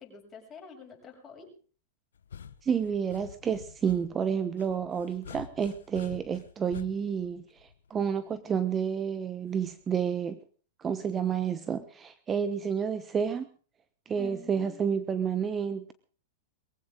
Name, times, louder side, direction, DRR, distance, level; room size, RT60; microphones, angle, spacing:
voice 1, 0.0-1.5 14.2-14.8, left 6 dB, 20° left, -1 dB, 7.3 m, -47 dB
sound 1, 2.1-8.2 9.6-10.0, left 7 dB, 85° left, 0.9 m, -48 dB
voice 2, 2.6-10.4 10.8-13.5 14.1-15.9, right 7 dB, 25° right, 12 dB, 1.1 m, -30 dB
22.0 x 15.5 x 3.8 m, 0.41 s
hypercardioid pair, 120°, 0 cm